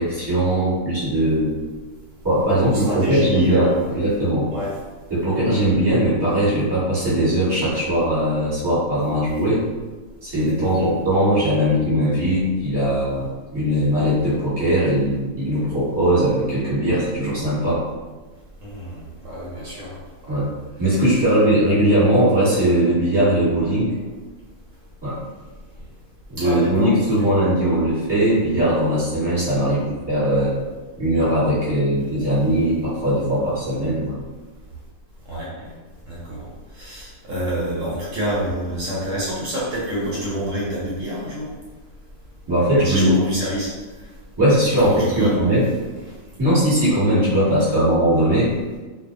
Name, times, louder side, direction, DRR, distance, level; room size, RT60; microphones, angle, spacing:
voice 1, 0.0-1.5 2.2-4.5 5.1-9.6 10.2-17.8 20.3-20.5 20.8-24.0 25.0-25.2 26.3-30.5 31.0-34.1 42.5-43.2 44.4-45.6 46.4-48.5, right 1 dB, 20° right, -11 dB, 1.1 m, -19 dB
voice 2, 2.7-3.9 4.5-4.8 10.6-10.9 18.6-20.4 26.4-27.3 35.3-35.7 36.1-41.5 42.8-43.7 44.8-45.7, equal, 70° right, -6 dB, 1.0 m, -28 dB
2.3 x 2.1 x 2.5 m, 1.3 s
omnidirectional pair, 1.4 m